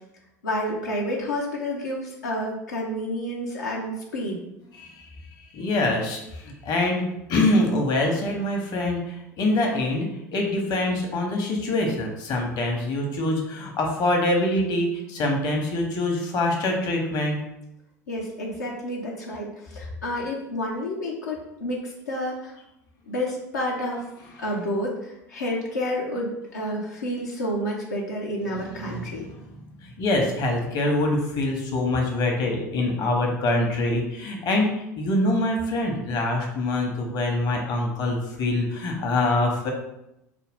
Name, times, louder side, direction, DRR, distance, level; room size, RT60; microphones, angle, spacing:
voice 1, 0.4-4.4 18.1-22.5 23.1-24.0 24.4-29.3, equal, 85° left, -3 dB, 0.7 m, -30 dB
voice 2, 5.5-7.0 7.3-17.4 28.5-29.2 30.0-39.7, left 2 dB, 50° left, 1 dB, 1.0 m, -24 dB
4.7 x 2.3 x 3.6 m, 0.85 s
hypercardioid pair, 80°, 9 cm